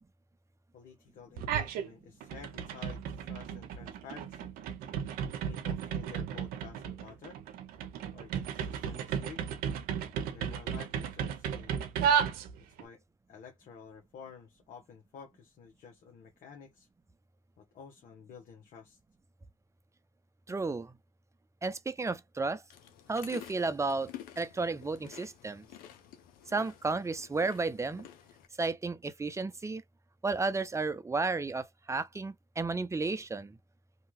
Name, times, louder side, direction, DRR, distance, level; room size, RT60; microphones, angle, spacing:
voice 1, 0.7-4.5 5.3-7.4 8.1-9.5 10.3-11.8 12.8-13.0 13.3-16.9 17.6-19.0, left 6 dB, 70° left, 0.9 m, -51 dB
sound 1, 1.4-1.9 2.2-12.9, right 8 dB, 85° right, 0.6 m, -34 dB
voice 2, 20.5-20.9 21.6-22.6 23.1-24.1 24.4-25.6 26.5-28.1 28.6-29.8 30.2-33.6, right 3 dB, 20° right, 0.6 m, -33 dB
sound 2, 22.7-28.5, left 11 dB, 85° left, 0.6 m, -50 dB
2.8 x 2.3 x 3.0 m
supercardioid pair, 65°, 15 cm